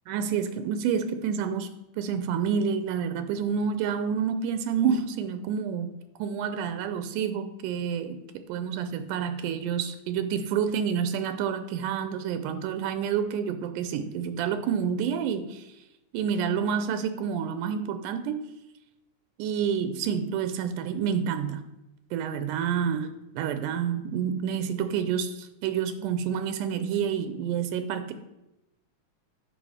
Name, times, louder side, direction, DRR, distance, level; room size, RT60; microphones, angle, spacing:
voice 1, 0.1-1.7 2.0-5.9 6.2-15.7 16.1-18.5 19.4-21.6 22.1-28.1, right 7 dB, 90° right, 9 dB, 2.2 m, -28 dB
9.1 x 5.5 x 4.8 m, 0.93 s
omnidirectional pair, 3.6 m